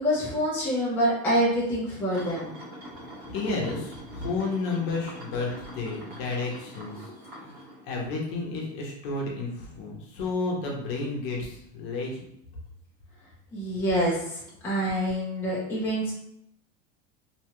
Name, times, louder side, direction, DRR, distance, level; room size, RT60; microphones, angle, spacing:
voice 1, 0.0-2.5 7.0-7.1 13.5-16.1, equal, 5° left, -8 dB, 0.5 m, -26 dB
sound 1, 2.1-8.6 9.0-9.2 12.7-12.8 14.5-14.6, equal, 60° right, 1.4 m, -44 dB
voice 2, 3.3-7.1 7.4-7.5 7.8-12.2, left 3 dB, 45° left, -1 dB, 0.8 m, -31 dB
2.8 x 2.2 x 2.9 m, 0.75 s
supercardioid pair, 165°, 32 cm